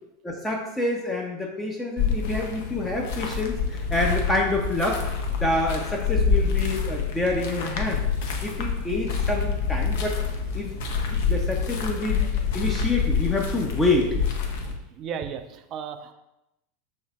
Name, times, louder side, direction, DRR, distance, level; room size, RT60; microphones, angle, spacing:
voice 1, 0.2-5.0 5.4-8.0 8.4-10.2 10.5-10.8 11.1-14.2, left 2 dB, 10° left, -1 dB, 0.6 m, -27 dB
sound 1, 2.0-14.7, left 5 dB, 55° left, 0.6 m, -27 dB
voice 2, 15.0-16.1, right 7 dB, 35° right, 8 dB, 0.4 m, -34 dB
6.3 x 3.1 x 2.3 m, 0.90 s
figure-of-eight pair, 85°, 0 cm